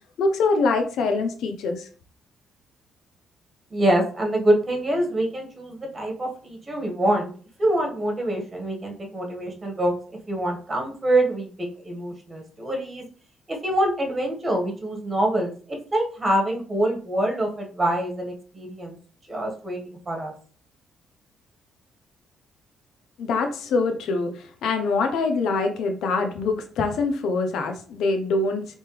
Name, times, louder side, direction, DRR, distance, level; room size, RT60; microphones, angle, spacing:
voice 1, 0.2-1.9 23.2-28.8, left 3 dB, 80° left, 0.7 m, -24 dB
voice 2, 3.7-7.3 7.6-9.9 10.3-13.0 13.5-19.0 19.3-19.8 20.0-20.3, right 1 dB, 25° right, 1.7 m, -25 dB
4.3 x 3.1 x 3.4 m
cardioid pair, 90°, 0 cm